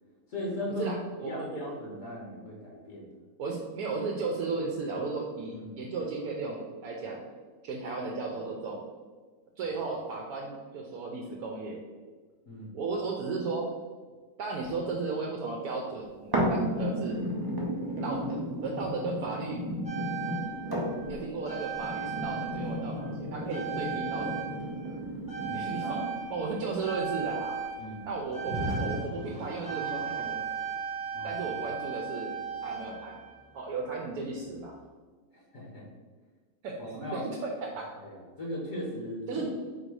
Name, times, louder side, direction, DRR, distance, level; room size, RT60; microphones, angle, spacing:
voice 1, 0.3-0.9 1.2-3.1 5.5-5.8 9.6-9.8 12.5-12.7 25.4-26.1 27.8-28.1 31.1-31.4 35.3-35.8 36.9-37.3 38.0-39.5, left 1 dB, 55° left, -3 dB, 1.3 m, -38 dB
voice 2, 1.2-1.6 3.4-7.2 7.6-8.8 9.6-11.8 12.7-13.7 14.4-17.2 18.0-19.6 21.1-24.4 25.5-26.0 26.3-27.6 28.1-30.5 31.2-32.3 32.6-33.2 33.5-34.8 36.6-37.9 39.3-39.5, right 4 dB, 75° right, -1 dB, 1.0 m, -35 dB
sound 1, 16.3-26.3 26.9-27.0, equal, 30° right, 0.4 m, -33 dB
sound 2, 19.8-23.1 23.5-33.6 34.5-34.6, right 5 dB, 5° right, 0.9 m, -36 dB
4.3 x 2.6 x 4.6 m, 1.4 s
omnidirectional pair, 1.7 m